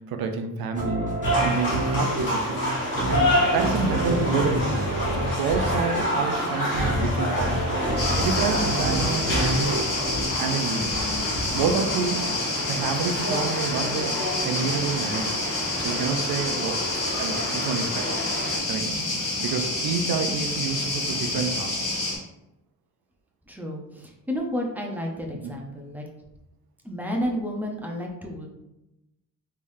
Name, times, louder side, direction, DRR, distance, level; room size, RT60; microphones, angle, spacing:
voice 1, 0.1-1.1 1.4-2.6 3.1-4.8 5.1-9.8 10.4-11.0 11.5-12.4 12.7-14.2 14.4-15.4 15.8-16.8 17.2-18.2 18.7-19.0 19.4-22.0 25.4-25.6, right 5 dB, 75° right, 5 dB, 0.6 m, -28 dB
sound 1, 0.7-10.3, right 1 dB, 20° right, 1.4 m, -28 dB
sound 2, 1.2-18.6, equal, 35° left, 1.5 m, -29 dB
sound 3, 8.0-22.2, left 2 dB, 55° left, 1.4 m, -28 dB
voice 2, 23.5-26.0 26.8-28.5, equal, 5° right, 0 dB, 0.6 m, -31 dB
3.7 x 3.3 x 2.6 m, 0.92 s
cardioid pair, 125°, 36 cm